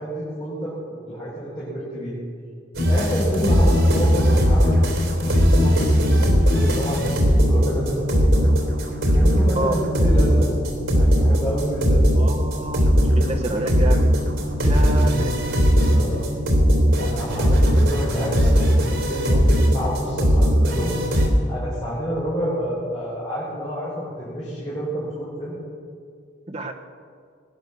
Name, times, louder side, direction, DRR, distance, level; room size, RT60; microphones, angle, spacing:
voice 1, 0.0-2.2 2.9-5.0 5.2-8.5 9.1-10.5 10.9-12.0 15.8-16.3 17.0-20.9 21.5-25.5, equal, 25° left, -9 dB, 5.0 m, -29 dB
sound 1, 2.7-21.3, equal, 80° right, 3.5 m, -19 dB
voice 2, 12.1-15.4 26.5-26.7, right 2 dB, 30° right, 2 dB, 1.3 m, -28 dB
20.0 x 10.5 x 6.9 m, 2.2 s
head